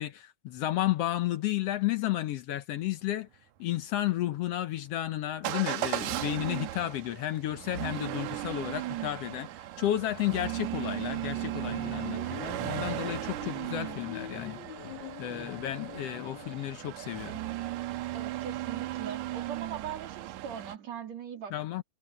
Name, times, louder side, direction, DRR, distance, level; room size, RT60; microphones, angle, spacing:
voice 1, 0.0-3.3 3.6-9.5 9.8-14.6 15.2-17.4 21.5-21.8, left 14 dB, 70° left, 1.6 m, -32 dB
Motor vehicle (road) / Engine starting / Accelerating revving vroom, 5.4-20.8, right 15 dB, 85° right, 2.2 m, -36 dB
sound 1, 8.9-17.6, right 1 dB, 25° right, 7.8 m, -63 dB
sound 2, 11.3-16.5, left 8 dB, 55° left, 1.6 m, -45 dB
voice 2, 18.1-21.5, right 8 dB, 65° right, 3.7 m, -40 dB
omnidirectional pair, 3.3 m